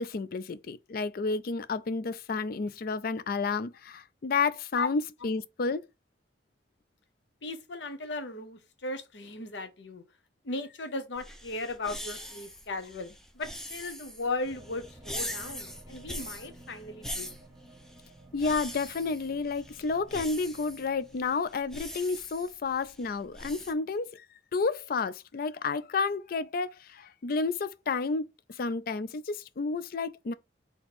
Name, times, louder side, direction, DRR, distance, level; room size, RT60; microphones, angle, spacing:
voice 1, 0.0-5.8 18.3-24.2 24.5-30.3, left 4 dB, 55° left, 0.4 m, -31 dB
voice 2, 7.4-10.0 10.4-17.4, left 2 dB, 80° left, 0.8 m, -37 dB
sound 1, 11.1-23.7, equal, 5° left, 0.7 m, -42 dB
sound 2, 14.4-21.3, right 1 dB, 20° right, 1.2 m, -54 dB
4.3 x 2.9 x 4.1 m
head